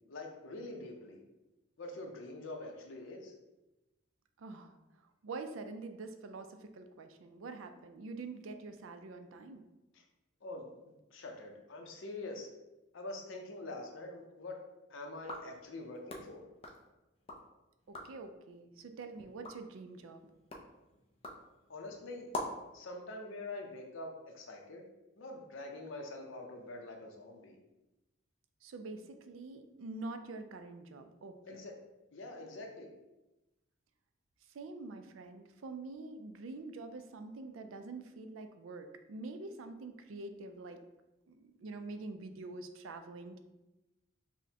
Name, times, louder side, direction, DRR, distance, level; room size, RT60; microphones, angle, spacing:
voice 1, 0.1-1.2 1.8-3.3 9.9-10.0 10.4-10.7 11.1-12.5 12.9-14.6 14.9-16.5 21.7-22.3 22.7-24.8 25.2-27.6 31.5-31.7 32.1-32.9, left 2 dB, 75° left, 2 dB, 0.7 m, -45 dB
voice 2, 4.4-4.8 5.2-9.7 17.9-20.2 28.6-31.6 34.5-40.8 41.3-43.4, right 3 dB, 85° right, 7 dB, 0.4 m, -46 dB
sound 1, 15.1-17.5 17.8-18.3 18.7-22.7, left 1 dB, 30° left, 0.4 m, -46 dB
6.1 x 2.1 x 2.7 m, 1.0 s
head